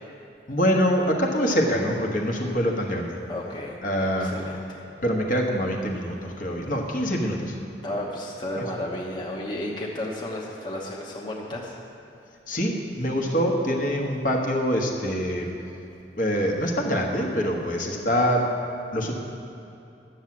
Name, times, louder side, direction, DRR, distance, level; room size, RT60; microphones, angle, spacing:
voice 1, 0.5-3.2 3.8-4.3 5.0-7.5 8.6-8.7 12.5-15.5 16.2-18.4 18.9-19.1, equal, 45° left, 0 dB, 1.3 m, -24 dB
voice 2, 3.3-3.8 4.0-4.8 7.8-11.7, left 1 dB, 25° left, -4 dB, 1.1 m, -33 dB
11.5 x 7.3 x 7.7 m, 2.7 s
head